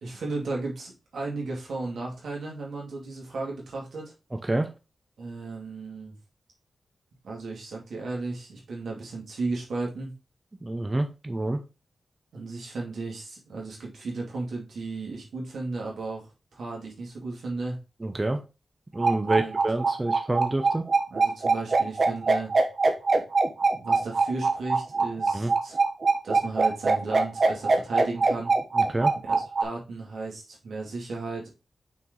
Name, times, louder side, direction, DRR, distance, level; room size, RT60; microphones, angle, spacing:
voice 1, 0.0-4.1 5.2-6.2 7.2-10.1 12.3-17.8 19.2-19.6 21.1-22.5 23.7-25.8 26.2-28.5 29.2-31.5, right 3 dB, 85° right, -2 dB, 2.4 m, -35 dB
voice 2, 10.6-11.6 18.0-18.4 18.9-20.8 25.3-25.5 28.8-29.1, right 2 dB, 25° right, 6 dB, 0.8 m, -27 dB
sound 1, 19.0-29.6, right 3 dB, 55° right, 1.2 m, -22 dB
5.9 x 4.6 x 3.9 m, 0.29 s
cardioid pair, 70°, 0 cm